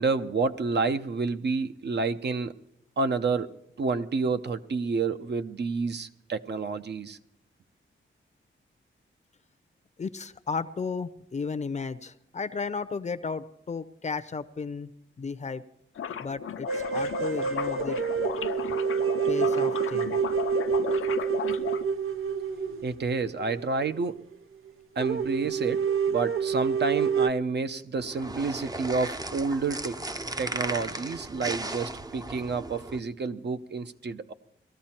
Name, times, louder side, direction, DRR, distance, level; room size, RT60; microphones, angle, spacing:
voice 1, 0.0-2.5 3.0-3.5 3.8-7.2 22.8-24.2 25.0-30.1 30.4-34.3, right 4 dB, 55° right, 9 dB, 0.8 m, -29 dB
voice 2, 10.0-15.6 16.2-18.0 19.3-20.2, left 4 dB, 35° left, 11 dB, 0.7 m, -34 dB
sound 1, 16.0-21.8, left 8 dB, 80° left, 0.7 m, -34 dB
sound 2, 16.7-24.0 24.3-24.4 24.7-24.8 25.0-27.3, right 6 dB, 85° right, 1.0 m, -28 dB
sound 3, 28.0-33.0, right 2 dB, 20° right, 0.6 m, -36 dB
19.0 x 13.5 x 4.4 m, 0.76 s
wide cardioid pair, 150°, 21 cm